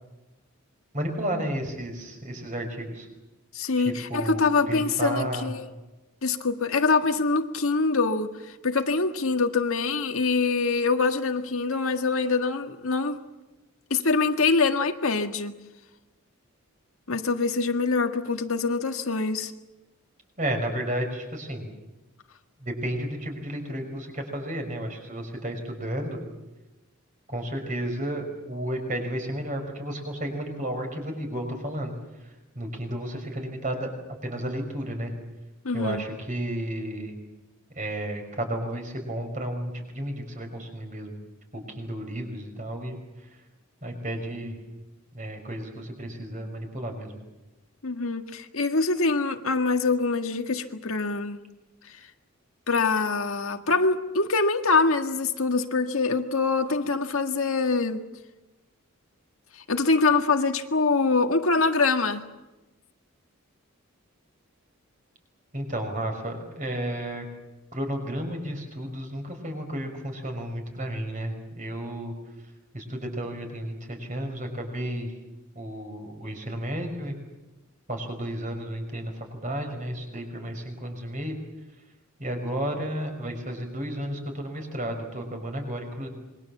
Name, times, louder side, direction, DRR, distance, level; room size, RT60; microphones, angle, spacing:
voice 1, 0.9-3.1 3.8-5.5 20.4-21.8 22.6-26.2 27.3-31.9 32.2-33.9 34.2-35.1 35.7-37.2 37.8-41.2 41.5-43.0 43.3-43.4 43.8-44.6 45.1-47.2 65.5-67.2 67.7-72.1 72.7-75.1 75.6-77.2 77.9-81.4 82.2-86.1, right 1 dB, 35° right, 5.5 m, -32 dB
voice 2, 3.5-5.6 6.2-8.3 8.6-13.2 13.9-15.5 17.1-19.5 35.7-36.0 47.8-51.4 52.7-58.0 59.7-62.2, left 4 dB, 75° left, 1.7 m, -24 dB
26.5 x 22.5 x 7.3 m
head